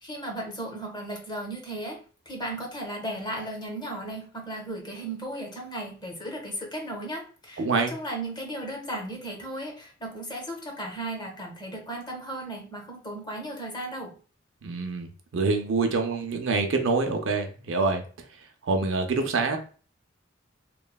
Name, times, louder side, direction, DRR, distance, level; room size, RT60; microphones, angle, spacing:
voice 1, 0.0-14.2, right 1 dB, 20° left, -1 dB, 0.7 m, -35 dB
voice 2, 7.6-7.9 14.6-15.1 15.3-18.0 18.6-19.6, right 3 dB, 70° right, 5 dB, 0.5 m, -25 dB
3.0 x 2.1 x 2.2 m, 0.38 s
head